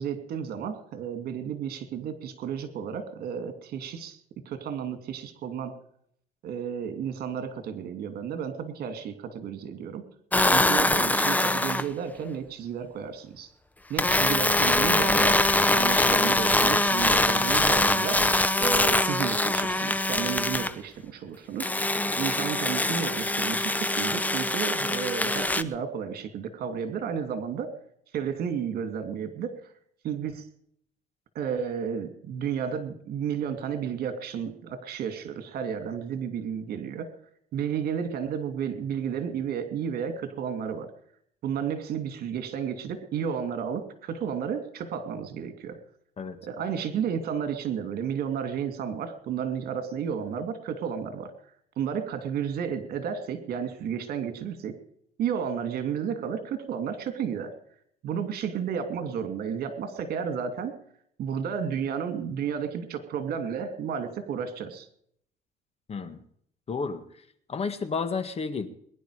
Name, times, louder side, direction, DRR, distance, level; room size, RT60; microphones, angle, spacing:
voice 1, 0.0-4.2 4.4-5.7 6.4-10.1 10.4-13.5 13.9-15.5 15.7-18.3 18.6-21.7 22.2-27.7 28.1-29.5 30.0-30.4 31.3-37.1 37.5-40.9 41.4-45.8 46.4-51.3 51.8-54.8 55.2-57.5 58.0-60.7 61.2-64.9, right 7 dB, 65° right, 9 dB, 2.7 m, -32 dB
sound 1, 10.3-11.9 14.0-20.7 21.6-25.6, left 2 dB, 10° left, 0.8 m, -23 dB
voice 2, 65.9-66.2 66.7-67.0 67.5-68.7, left 5 dB, 35° left, 11 dB, 1.8 m, -31 dB
22.0 x 11.0 x 5.0 m, 0.68 s
cardioid pair, 110°, 17 cm